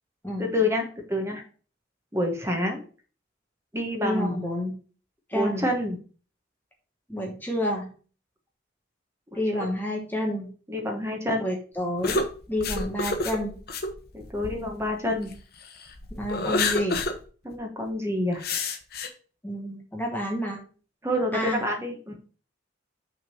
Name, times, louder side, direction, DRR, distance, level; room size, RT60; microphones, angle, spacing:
voice 1, 0.4-1.4 2.1-2.8 3.7-4.5 5.3-6.0 9.3-9.6 10.7-11.4 14.1-15.3 17.4-18.4 21.0-22.1, left 1 dB, 15° right, 2 dB, 1.2 m, -28 dB
voice 2, 4.0-4.7 5.3-5.7 7.1-7.9 9.3-10.5 11.3-12.2 12.5-13.6 16.1-17.0 19.4-20.6 21.3-21.6, equal, 10° left, 1 dB, 1.1 m, -29 dB
sound 1, 12.0-15.4 15.8-17.2 17.5-17.6 18.4-19.1, left 2 dB, 55° left, 1.0 m, -29 dB
6.0 x 3.7 x 6.0 m, 0.39 s
head